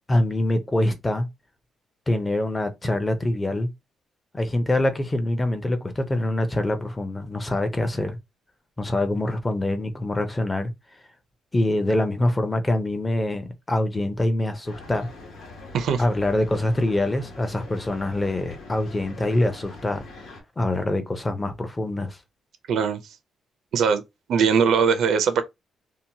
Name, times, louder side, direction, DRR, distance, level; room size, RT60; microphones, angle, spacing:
voice 1, 0.1-1.3 2.1-3.7 4.3-8.2 8.8-10.7 11.5-15.1 16.0-20.0 20.6-22.2, left 1 dB, 15° left, 0.5 m, -24 dB
sound 1, 14.6-20.4, left 2 dB, 75° left, 1.1 m, -42 dB
voice 2, 22.7-23.0 23.7-24.0 24.3-25.4, right 6 dB, 65° right, 0.4 m, -20 dB
2.7 x 2.1 x 2.7 m
cardioid pair, 150°, 0 cm